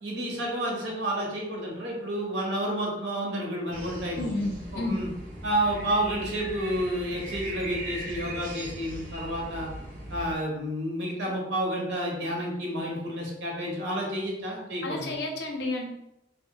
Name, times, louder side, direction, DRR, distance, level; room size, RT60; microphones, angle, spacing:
voice 1, 0.0-4.3 4.7-5.1 5.4-9.7 10.1-15.2, right 1 dB, 85° right, -1 dB, 0.9 m, -30 dB
sound 1, 3.7-10.3, right 1 dB, 50° right, 0.6 m, -39 dB
voice 2, 4.2-5.0 14.8-15.9, left 2 dB, 70° left, 1 dB, 0.5 m, -31 dB
2.2 x 2.1 x 3.7 m, 0.86 s
head